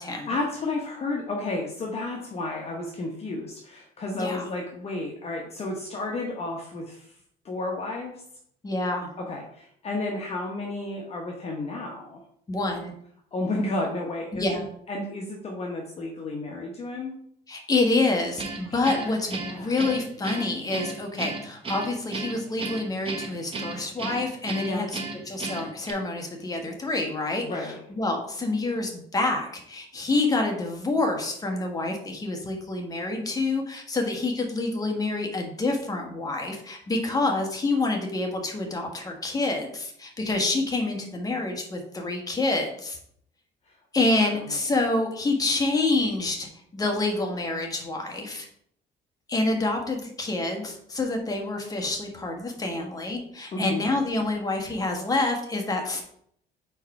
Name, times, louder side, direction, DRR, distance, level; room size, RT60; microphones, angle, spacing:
voice 1, 0.3-7.2 7.4-8.2 9.2-12.2 13.3-17.2 18.6-19.2 19.4-19.7 24.6-24.9 27.4-27.8 43.7-43.8 44.2-44.6 53.5-53.8, left 2 dB, 40° left, 1 dB, 1.0 m, -32 dB
voice 2, 8.6-9.1 12.5-12.9 14.3-14.6 17.5-24.9 25.3-27.4 27.9-43.0 43.9-46.5 46.7-48.4 49.3-56.0, left 2 dB, 20° left, 2 dB, 1.3 m, -27 dB
Guitar, 18.4-25.9, right 3 dB, 35° right, 1.1 m, -34 dB
4.6 x 4.3 x 4.7 m, 0.67 s
cardioid pair, 110°, 17 cm